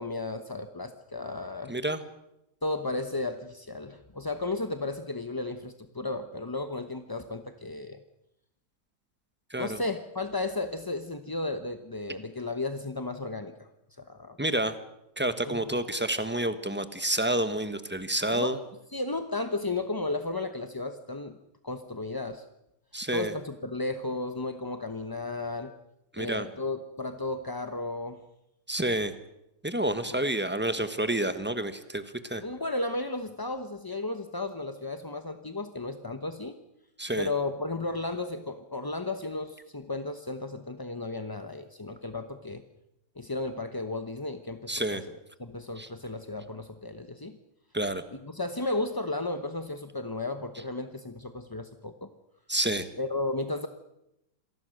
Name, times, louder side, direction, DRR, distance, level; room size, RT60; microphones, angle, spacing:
voice 1, 0.0-1.7 2.6-8.0 9.6-13.7 14.0-14.4 15.5-15.7 18.3-18.5 18.9-21.4 21.6-22.4 23.1-25.7 26.1-28.2 30.1-30.2 32.4-36.6 37.2-42.6 43.2-47.4 48.2-52.1 53.0-53.7, left 2 dB, 20° left, 8 dB, 0.6 m, -34 dB
voice 2, 1.7-2.0 9.5-9.8 14.4-14.8 15.2-18.6 22.9-23.3 26.1-26.5 28.7-29.1 29.6-32.4 37.0-37.3 44.7-45.0 45.8-45.9 47.7-48.0 52.5-52.9, right 1 dB, 5° right, 10 dB, 1.1 m, -29 dB
27.0 x 19.0 x 6.5 m, 0.84 s
omnidirectional pair, 1.9 m